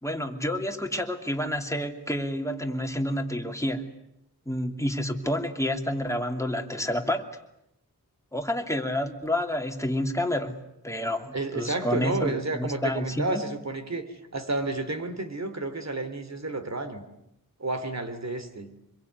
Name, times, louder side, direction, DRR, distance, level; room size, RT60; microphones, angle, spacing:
voice 1, 0.0-3.8 4.5-7.2 8.3-10.6 10.8-13.4, left 1 dB, 10° left, 4 dB, 2.8 m, -29 dB
voice 2, 11.3-17.0 17.6-18.7, right 2 dB, 50° right, 9 dB, 3.2 m, -31 dB
26.0 x 22.5 x 9.5 m, 0.82 s
wide cardioid pair, 85°, 35 cm